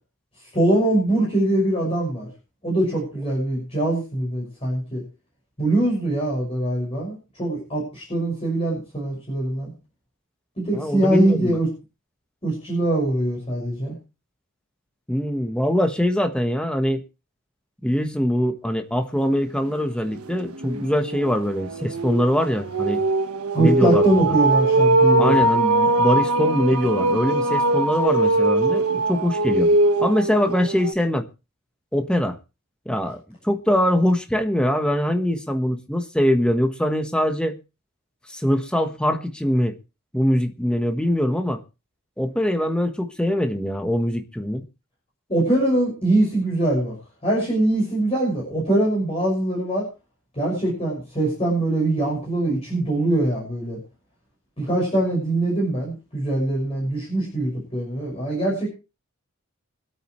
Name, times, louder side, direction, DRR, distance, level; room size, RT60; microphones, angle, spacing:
voice 1, 0.5-2.3 2.6-5.0 5.6-9.7 10.6-11.7 12.4-13.9 23.5-25.4 45.3-46.9 47.2-49.9 50.3-53.8 54.6-58.7, right 1 dB, 25° left, 6.3 m, -22 dB
voice 2, 10.7-11.6 15.1-17.0 17.8-23.0 23.6-24.4 25.2-29.7 30.0-31.3 31.9-32.4 32.8-37.6 38.3-39.8 40.1-41.6 42.2-44.6, equal, 5° left, 1.2 m, -23 dB
sound 1, 19.7-19.8 20.2-30.9, right 2 dB, 85° right, 1.3 m, -21 dB
25.0 x 8.7 x 3.2 m
head